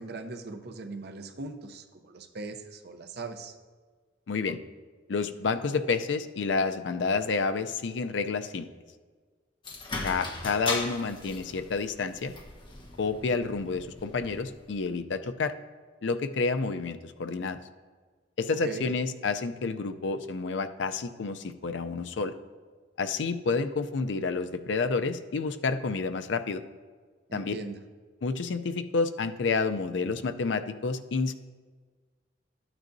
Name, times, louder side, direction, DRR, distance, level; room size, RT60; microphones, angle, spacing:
voice 1, 0.0-3.5 18.5-18.9 27.3-27.8, right 3 dB, 60° right, 7 dB, 0.7 m, -40 dB
voice 2, 4.3-4.6 5.1-8.7 10.0-12.3 13.0-15.5 16.0-17.6 18.4-22.3 23.0-26.6 27.3-27.5 28.2-31.4, left 4 dB, 75° left, 10 dB, 0.5 m, -29 dB
sound 1, 9.6-15.0, left 3 dB, 25° left, 1.1 m, -38 dB
12.5 x 9.1 x 2.6 m, 1.5 s
head